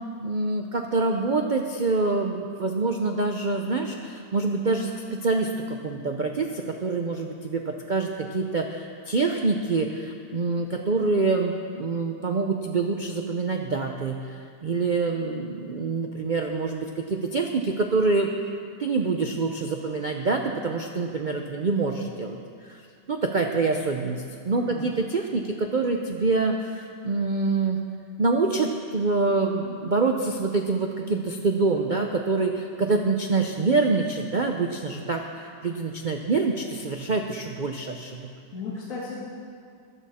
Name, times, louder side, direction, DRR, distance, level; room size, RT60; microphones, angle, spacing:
voice 1, 0.2-18.3 18.8-27.8 28.2-38.3, right 3 dB, 65° right, 2 dB, 0.4 m, -26 dB
voice 2, 24.5-25.0 38.5-39.2, left 3 dB, 50° left, -6 dB, 2.1 m, -35 dB
15.5 x 12.0 x 4.2 m, 2.3 s
omnidirectional pair, 1.8 m